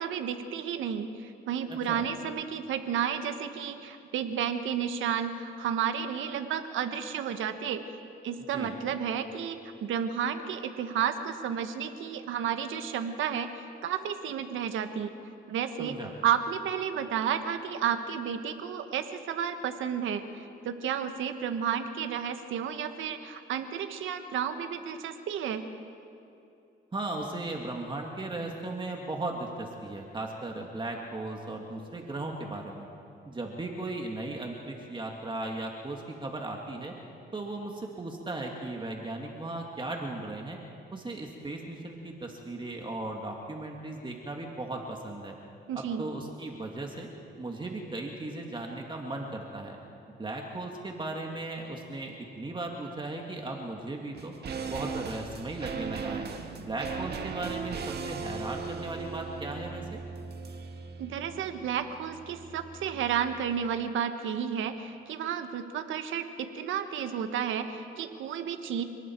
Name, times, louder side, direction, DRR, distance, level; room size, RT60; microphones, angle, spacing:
voice 1, 0.0-7.8 8.2-13.5 13.8-15.1 15.5-16.0 16.2-25.6 45.7-46.0 61.0-68.8, right 8 dB, 80° right, 8 dB, 1.5 m, -32 dB
voice 2, 1.7-2.0 8.5-8.7 15.8-16.1 26.9-32.9 33.3-36.9 37.3-40.6 40.9-45.4 45.7-47.1 47.4-49.8 50.1-54.3 54.7-56.3 56.6-60.0, right 2 dB, 25° right, 1 dB, 2.2 m, -37 dB
sound 1, 54.1-63.5 63.8-63.9, right 5 dB, 55° right, 1.8 m, -38 dB
29.0 x 19.0 x 4.7 m, 2.6 s
cardioid pair, 90°, 20 cm